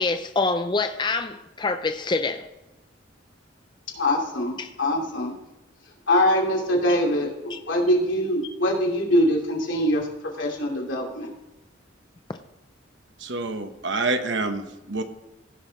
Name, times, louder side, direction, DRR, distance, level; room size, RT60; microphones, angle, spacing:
voice 1, 0.0-2.5 4.6-4.7 7.5-7.6, left 3 dB, 25° left, 0.4 m, -26 dB
voice 2, 4.0-5.3 6.1-11.3, left 1 dB, 85° left, 2.7 m, -23 dB
voice 3, 13.2-15.0, right 3 dB, 70° right, 1.1 m, -27 dB
16.0 x 6.4 x 4.0 m
head